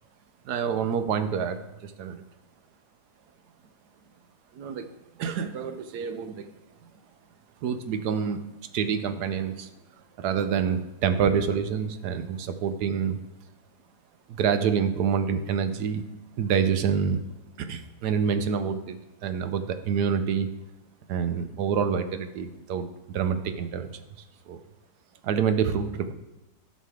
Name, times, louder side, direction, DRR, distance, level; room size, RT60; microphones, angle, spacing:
voice 1, 0.4-2.2 4.5-4.9 5.2-6.5 7.6-8.4 8.7-9.7 10.2-13.2 14.3-16.0 16.4-17.2 17.6-20.5 21.1-23.9 24.2-24.6 25.2-26.1, right 7 dB, 80° right, 9 dB, 1.2 m, -27 dB
11.0 x 6.3 x 3.5 m, 1.0 s
omnidirectional pair, 1.7 m